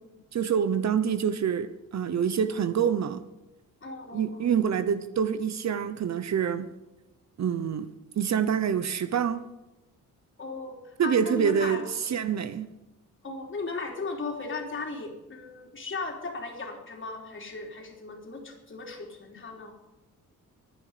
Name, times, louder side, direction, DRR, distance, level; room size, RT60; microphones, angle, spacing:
voice 1, 0.3-3.2 4.1-6.7 7.4-7.9 8.2-9.4 11.0-12.7, right 7 dB, 55° right, 0.9 m, -26 dB
voice 2, 3.8-4.5 10.4-11.9 13.2-19.7, left 3 dB, 35° left, 3.6 m, -37 dB
24.0 x 9.9 x 5.1 m
wide cardioid pair, 150°, 34 cm